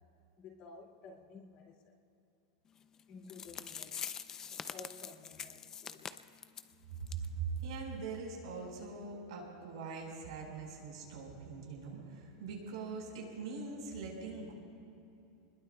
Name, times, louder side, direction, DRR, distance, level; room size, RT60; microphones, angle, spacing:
voice 1, 0.4-2.0 3.1-4.0 4.7-6.2, left 4 dB, 40° left, 0 dB, 2.3 m, -53 dB
sound 1, 3.0-3.1 3.3-6.7 7.1-7.3 7.6-7.7 8.1-8.2, left 7 dB, 20° left, 0.4 m, -44 dB
voice 2, 7.1-14.5, right 4 dB, 85° right, -1 dB, 4.7 m, -42 dB
26.5 x 21.0 x 2.3 m, 2.8 s
supercardioid pair, 165°, 3 cm